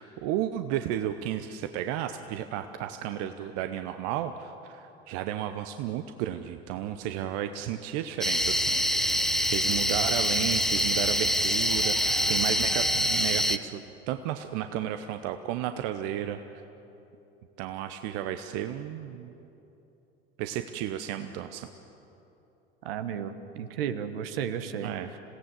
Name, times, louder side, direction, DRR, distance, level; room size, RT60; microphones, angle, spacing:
voice 1, 0.0-13.8 14.1-16.4 17.6-19.3 20.4-21.7 24.8-25.1, right 11 dB, 55° right, 8 dB, 0.9 m, -33 dB
sound 1, 8.2-13.6, equal, ahead, 0.7 m, -25 dB
voice 2, 22.8-24.9, right 8 dB, 70° right, 10 dB, 1.3 m, -33 dB
27.0 x 17.0 x 7.6 m, 3.0 s
figure-of-eight pair, 75°, 31 cm